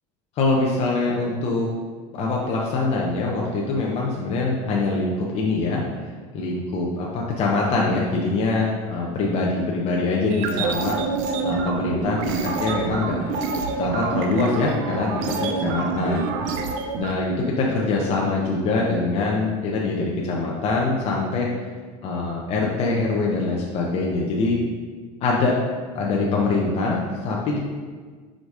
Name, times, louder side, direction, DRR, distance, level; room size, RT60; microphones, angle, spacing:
voice 1, 0.4-1.7 2.1-5.8 6.3-11.0 11.4-13.2 13.8-16.3 17.0-21.5 22.0-24.6 25.2-25.6 25.9-27.6, left 3 dB, 40° left, -2 dB, 0.8 m, -23 dB
sound 1, 10.3-17.1, right 5 dB, 65° right, 0.7 m, -27 dB
5.1 x 3.9 x 4.9 m, 1.5 s
supercardioid pair, 135°, 15 cm